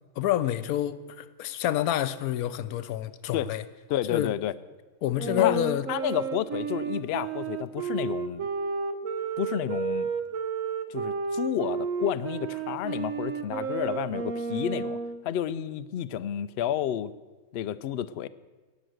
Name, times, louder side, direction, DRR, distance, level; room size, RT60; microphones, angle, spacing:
voice 1, 0.2-3.6 4.1-4.3 5.0-5.9, left 12 dB, 90° left, 1.1 m, -28 dB
voice 2, 3.9-4.5 5.4-5.6 5.9-8.5 9.4-10.1 10.9-15.0 15.2-17.1 17.5-18.3, left 10 dB, 65° left, 0.6 m, -30 dB
Wind instrument woodwind instrument, 5.2-15.2, right 6 dB, 70° right, 1.2 m, -32 dB
18.5 x 6.2 x 7.8 m
omnidirectional pair, 1.5 m